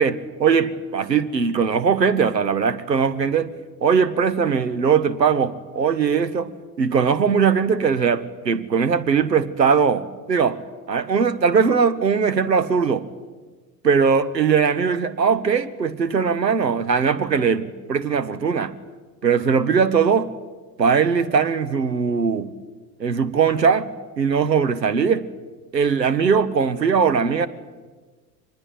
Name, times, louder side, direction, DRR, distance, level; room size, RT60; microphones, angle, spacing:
voice 1, 0.0-3.5 3.8-6.5 6.8-10.6 10.9-13.1 13.8-18.7 19.2-20.3 20.8-22.5 23.0-23.9 24.2-25.2 25.7-27.5, right 6 dB, 85° right, 1.2 m, -20 dB
24.5 x 20.5 x 9.4 m
figure-of-eight pair, 75°, 49 cm